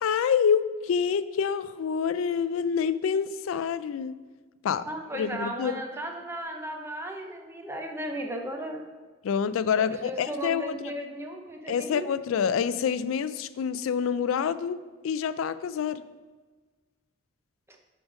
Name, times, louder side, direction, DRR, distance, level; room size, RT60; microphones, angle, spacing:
voice 1, 0.0-4.2 4.6-4.9 5.1-5.7 9.2-10.9 11.7-16.0, left 7 dB, 85° left, 15 dB, 0.3 m, -27 dB
voice 2, 4.8-8.8 9.8-12.1, right 1 dB, 10° right, 3 dB, 0.7 m, -35 dB
10.0 x 3.8 x 4.9 m, 1.3 s
head